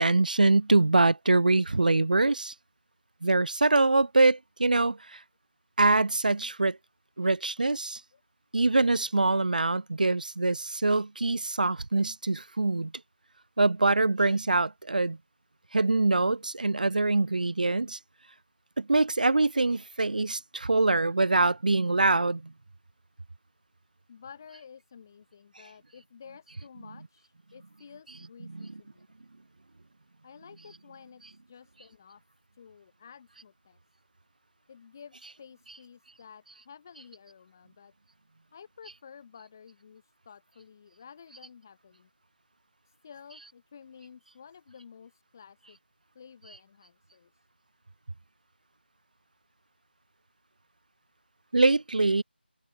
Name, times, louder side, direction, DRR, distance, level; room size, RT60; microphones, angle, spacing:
voice 1, 0.0-2.5 3.2-5.2 5.8-6.8 7.2-8.0 8.5-12.9 13.6-15.2 15.7-18.0 18.8-22.5 28.5-28.7 51.5-52.2, right 2 dB, 45° right, 0.5 m, -24 dB
voice 2, 24.1-29.0 30.2-31.2 31.5-32.2 32.5-33.8 34.7-37.9 38.5-42.1 42.9-45.8 46.1-47.3, left 7 dB, 20° left, 2.6 m, -52 dB
figure-of-eight pair, 170°, 6 cm